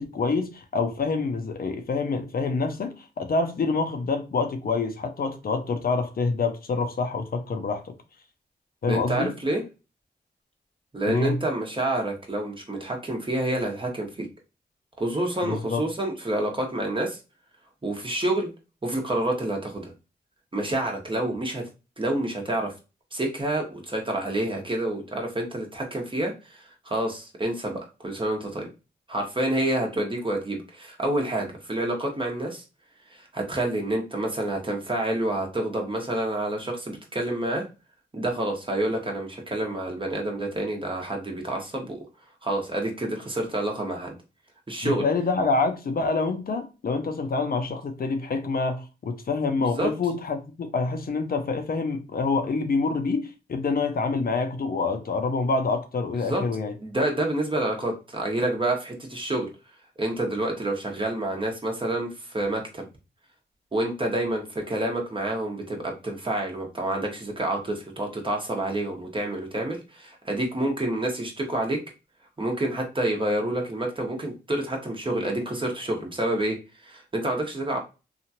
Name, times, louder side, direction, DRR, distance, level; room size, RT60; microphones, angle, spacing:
voice 1, 0.0-8.0 8.8-9.3 11.1-11.4 15.4-15.8 44.8-56.7, left 4 dB, 55° left, 0.6 m, -26 dB
voice 2, 8.9-9.6 10.9-14.3 15.0-17.2 17.8-18.5 18.8-19.9 20.5-21.6 22.0-22.7 23.1-28.7 29.1-32.6 33.1-37.6 38.1-42.0 42.4-44.2 44.7-45.0 49.6-49.9 56.2-56.4 56.8-59.5 60.0-62.8 63.7-71.8 72.4-76.6 76.8-77.8, right 1 dB, 30° right, 1.1 m, -28 dB
2.8 x 2.4 x 2.8 m
cardioid pair, 55°, 18 cm